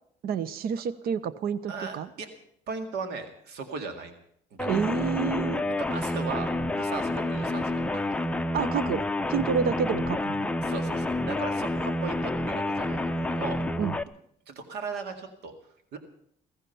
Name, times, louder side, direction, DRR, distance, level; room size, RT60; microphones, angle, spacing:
voice 1, 0.2-2.1 4.7-5.8 8.5-10.5 13.8-14.0, right 7 dB, 65° right, 16 dB, 0.8 m, -29 dB
voice 2, 1.7-2.3 2.7-4.1 4.5-5.1 5.8-8.3 10.6-13.6 14.5-15.5 15.9-16.0, right 4 dB, 80° right, 7 dB, 2.1 m, -37 dB
sound 1, 4.6-14.0, left 1 dB, 5° left, 0.6 m, -29 dB
15.5 x 15.5 x 5.7 m, 0.68 s
cardioid pair, 110°, 17 cm